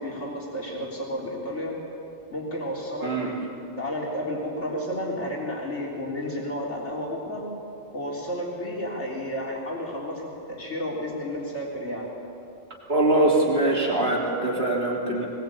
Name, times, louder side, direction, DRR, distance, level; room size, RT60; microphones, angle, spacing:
voice 1, 0.0-1.8 2.3-3.4 3.8-7.5 7.9-12.1, equal, 80° left, -3 dB, 4.0 m, -32 dB
voice 2, 12.9-15.3, right 2 dB, 60° right, -3 dB, 3.6 m, -22 dB
22.0 x 20.5 x 8.5 m, 2.7 s
omnidirectional pair, 1.2 m